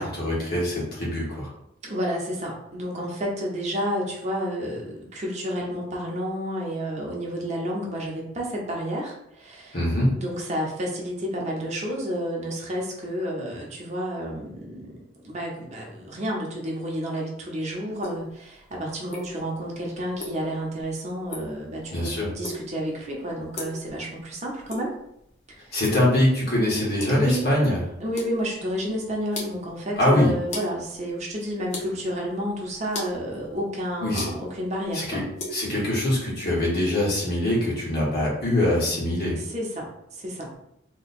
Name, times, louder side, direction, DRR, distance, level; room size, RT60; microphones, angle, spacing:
voice 1, 0.0-1.5 9.7-10.1 21.9-22.3 25.7-27.8 30.0-30.3 34.0-34.3 34.9-35.2 35.5-39.4, left 1 dB, 55° left, -5 dB, 1.4 m, -23 dB
voice 2, 1.8-9.8 10.1-25.0 25.5-25.6 27.1-27.5 28.0-35.2 39.4-40.5, equal, 40° right, -2 dB, 0.8 m, -30 dB
sound 1, 17.9-35.5, left 1 dB, 40° left, 0.8 m, -40 dB
2.9 x 2.3 x 4.2 m, 0.78 s
head